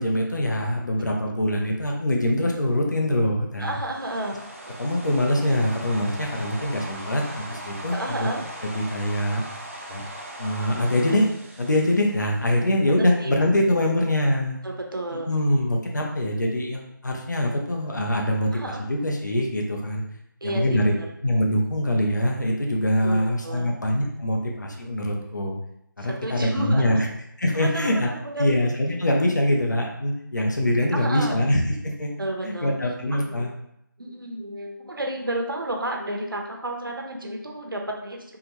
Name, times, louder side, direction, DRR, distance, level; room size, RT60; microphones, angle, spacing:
voice 1, 0.0-3.7 4.8-8.3 8.7-9.4 9.9-10.0 10.4-11.3 11.6-14.6 15.1-18.5 18.9-20.0 20.4-20.9 21.2-25.6 26.0-27.1 27.4-28.1 28.4-32.1 32.4-33.5, left 1 dB, 60° left, 0 dB, 0.7 m, -23 dB
sound 1, 3.6-12.8, right 1 dB, 40° right, 0.5 m, -40 dB
voice 2, 3.6-4.4 4.7-4.8 6.6-6.7 7.9-8.4 12.9-13.3 14.6-15.3 18.5-18.8 20.4-21.1 23.0-23.8 26.0-27.0 27.5-28.4 30.9-31.4 32.2-32.8 33.1-33.5 34.0-38.4, right 1 dB, 80° right, 1 dB, 0.8 m, -32 dB
3.6 x 2.2 x 2.9 m, 0.77 s
figure-of-eight pair, 170°, 11 cm